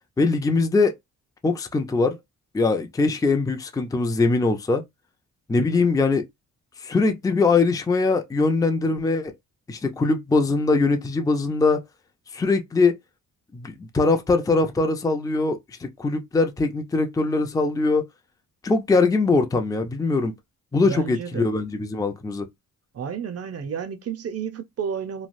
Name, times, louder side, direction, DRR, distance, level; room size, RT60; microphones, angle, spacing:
voice 1, 0.2-0.9 1.4-2.2 2.5-4.8 5.5-6.2 6.8-9.3 9.7-11.8 12.3-13.0 13.5-18.0 18.6-20.3 20.7-22.5, left 3 dB, 10° left, 0.4 m, -22 dB
voice 2, 20.8-21.5 22.9-25.3, right 7 dB, 45° right, 0.6 m, -31 dB
3.2 x 2.3 x 2.5 m
cardioid pair, 105°, 34 cm